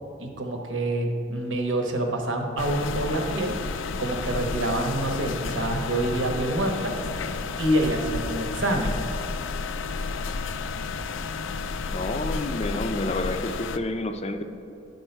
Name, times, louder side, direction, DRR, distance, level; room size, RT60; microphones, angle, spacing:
voice 1, 0.2-3.5 4.0-6.9 7.6-9.0, right 1 dB, 80° right, 3 dB, 1.1 m, -26 dB
sound 1, 2.6-13.8, left 4 dB, 90° left, 0.4 m, -31 dB
Wind instrument woodwind instrument, 4.1-8.1, left 1 dB, 35° right, 1.0 m, -45 dB
voice 2, 11.9-14.4, left 2 dB, 35° left, 8 dB, 0.5 m, -29 dB
11.0 x 5.5 x 4.5 m, 2.7 s
head